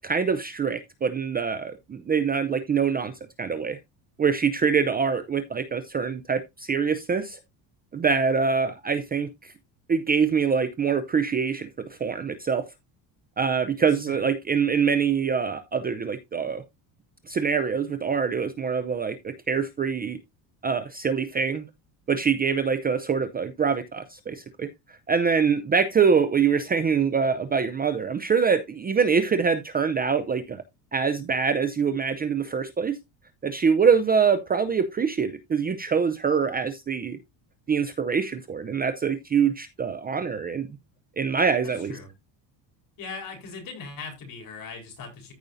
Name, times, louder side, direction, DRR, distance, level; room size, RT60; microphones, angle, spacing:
voice 1, 0.0-3.1 3.4-3.8 4.2-7.4 7.9-9.5 9.9-11.7 12.0-12.6 13.4-16.6 17.3-20.2 20.6-21.6 22.1-24.7 25.1-30.6 30.9-33.0 33.4-37.2 37.7-40.7 41.2-42.0, right 6 dB, 20° right, 0.5 m, -24 dB
voice 2, 13.9-14.2 41.6-42.1 43.0-45.3, left 4 dB, 45° left, 4.2 m, -40 dB
14.0 x 5.3 x 2.6 m
cardioid pair, 135°, 44 cm